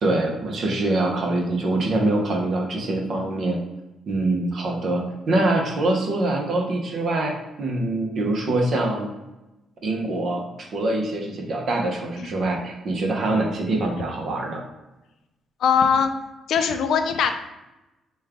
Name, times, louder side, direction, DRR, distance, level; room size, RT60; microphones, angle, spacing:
voice 1, 0.0-3.6 4.1-9.1 9.8-14.6, right 2 dB, 60° right, 1 dB, 0.7 m, -24 dB
voice 2, 15.6-16.1 16.5-17.3, left 7 dB, 75° left, 7 dB, 0.4 m, -20 dB
3.1 x 2.3 x 3.5 m, 1.0 s
cardioid pair, 90°, 0 cm